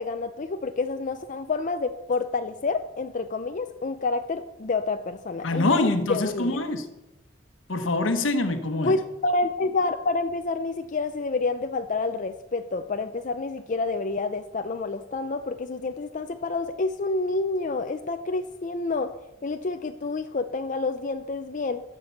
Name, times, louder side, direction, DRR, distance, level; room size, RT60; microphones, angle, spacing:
voice 1, 0.0-6.6 8.8-19.1 19.4-21.8, left 3 dB, 40° left, 7 dB, 0.5 m, -28 dB
voice 2, 5.4-6.9 7.7-9.0, left 2 dB, 80° left, 8 dB, 1.2 m, -25 dB
12.5 x 6.8 x 7.1 m, 0.99 s
head